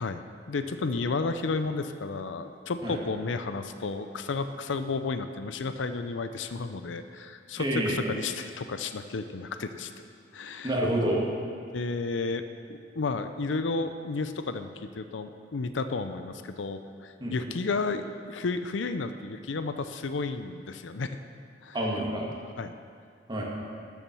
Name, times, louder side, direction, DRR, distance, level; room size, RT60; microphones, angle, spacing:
voice 1, 0.0-10.0 10.3-10.7 11.7-12.4 12.7-21.2 21.6-21.8 22.6-22.7, left 3 dB, 75° left, 9 dB, 0.6 m, -32 dB
voice 2, 7.5-8.0 10.6-11.2 17.2-17.4 21.7-22.3 23.3-23.4, right 1 dB, 25° right, -3 dB, 2.0 m, -28 dB
12.5 x 7.3 x 6.1 m, 2.2 s
head